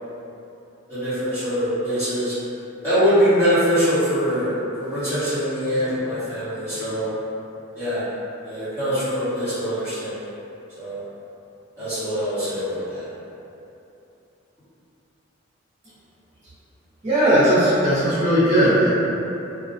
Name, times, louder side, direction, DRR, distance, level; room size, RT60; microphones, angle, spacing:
voice 1, 0.9-2.3 2.8-7.1 7.7-8.1 8.4-10.3 10.8-11.0 11.8-13.1, equal, 15° left, -17 dB, 1.1 m, -23 dB
voice 2, 17.0-18.9, right 1 dB, 35° right, -14 dB, 0.8 m, -17 dB
2.4 x 2.2 x 2.5 m, 2.8 s
head